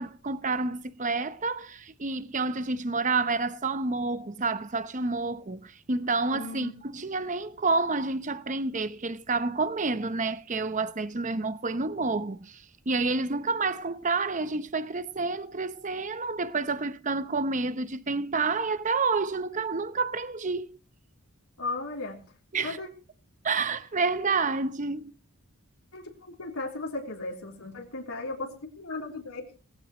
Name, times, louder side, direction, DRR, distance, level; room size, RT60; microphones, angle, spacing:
voice 1, 0.0-20.8 22.5-22.8 23.4-25.1, right 3 dB, 35° right, 0.8 m, -29 dB
voice 2, 6.3-6.7 21.6-22.2 22.6-22.9 25.9-29.5, left 3 dB, 80° left, 3.4 m, -36 dB
19.0 x 15.0 x 3.0 m
head